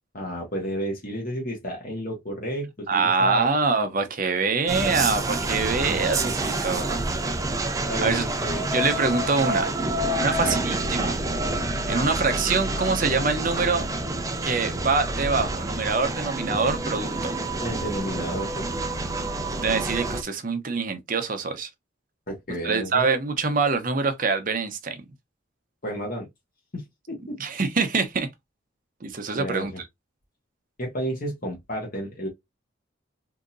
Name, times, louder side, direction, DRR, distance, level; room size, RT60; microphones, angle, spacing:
voice 1, 0.1-3.4 7.9-8.7 10.4-10.6 17.6-18.8 22.3-23.0 25.8-26.3 26.7-27.4 29.3-29.8 30.8-32.3, equal, 45° left, 1.3 m, -32 dB
voice 2, 2.9-7.0 7.7-8.2 8.7-9.7 10.2-11.2 11.9-13.9 14.4-17.4 19.5-21.7 22.6-25.0 27.4-28.3 29.0-29.7, right 4 dB, 45° right, 0.7 m, -25 dB
sound 1, 4.7-20.2, right 2 dB, 20° right, 0.4 m, -28 dB
3.7 x 2.8 x 2.5 m
head